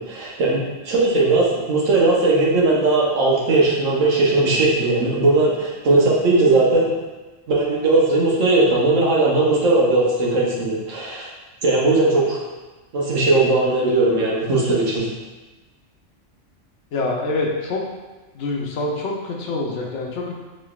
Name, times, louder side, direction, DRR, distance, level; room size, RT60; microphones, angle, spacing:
voice 1, 0.0-6.9 7.5-11.3 11.6-12.4 12.9-15.1, right 2 dB, 75° right, -4 dB, 1.2 m, -18 dB
voice 2, 16.9-17.8 18.3-20.3, left 2 dB, 70° left, -1 dB, 0.9 m, -25 dB
3.9 x 3.1 x 2.3 m, 1.2 s
omnidirectional pair, 1.3 m